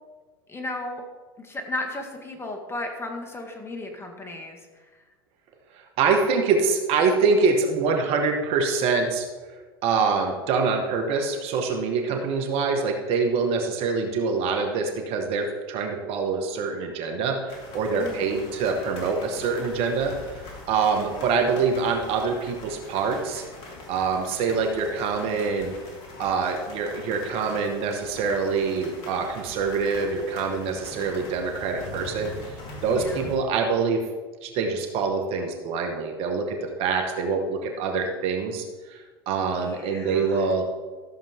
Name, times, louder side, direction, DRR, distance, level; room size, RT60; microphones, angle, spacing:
voice 1, 0.5-1.0 1.4-4.9 12.1-12.2 18.0-18.5 32.9-33.3 39.6-40.5, left 2 dB, 20° left, 3 dB, 1.9 m, -35 dB
voice 2, 5.7-9.3 9.8-23.4 23.9-25.7 26.2-34.0 34.4-40.7, right 4 dB, 55° right, 3 dB, 1.7 m, -25 dB
sound 1, 17.5-33.4, left 2 dB, 50° left, 3.2 m, -42 dB
14.0 x 7.4 x 3.7 m, 1.3 s
hypercardioid pair, 90°, 12 cm